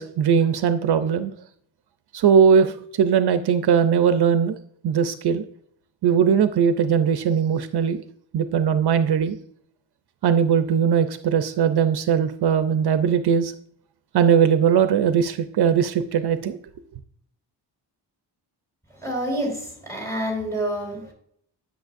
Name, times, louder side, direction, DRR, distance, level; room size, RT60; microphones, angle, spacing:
voice 1, 0.0-1.3 2.1-4.6 4.8-5.4 6.0-8.0 8.3-9.4 10.2-13.5 14.1-16.6, right 7 dB, 65° right, 11 dB, 0.6 m, -20 dB
voice 2, 19.0-21.1, equal, 5° left, -1 dB, 3.2 m, -28 dB
10.5 x 6.4 x 2.5 m, 0.65 s
wide cardioid pair, 135°, 42 cm